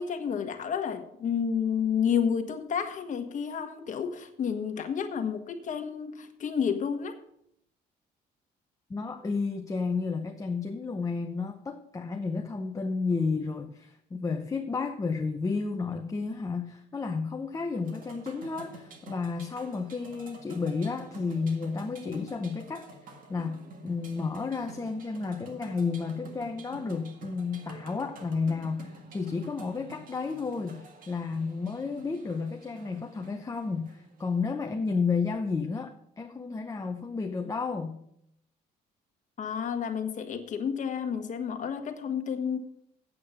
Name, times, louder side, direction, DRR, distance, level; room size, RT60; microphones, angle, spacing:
voice 1, 0.0-7.2 39.4-42.6, left 7 dB, 50° left, 6 dB, 1.3 m, -30 dB
voice 2, 8.9-38.0, left 4 dB, 20° left, 5 dB, 0.7 m, -32 dB
sound 1, 17.8-34.7, right 2 dB, 55° right, 1.8 m, -49 dB
8.5 x 8.2 x 5.7 m, 0.74 s
cardioid pair, 110°, 17 cm